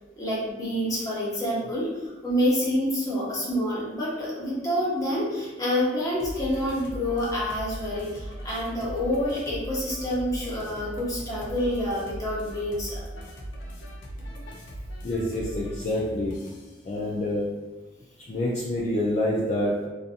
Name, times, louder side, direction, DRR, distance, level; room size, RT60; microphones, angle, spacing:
voice 1, 0.2-13.0, equal, 20° left, -6 dB, 0.8 m, -27 dB
sound 1, 6.2-16.8, right 1 dB, 85° left, 0.5 m, -39 dB
voice 2, 15.0-16.3 16.8-17.5 18.3-19.9, left 1 dB, 40° left, -5 dB, 0.3 m, -27 dB
2.6 x 2.5 x 2.4 m, 1.1 s
head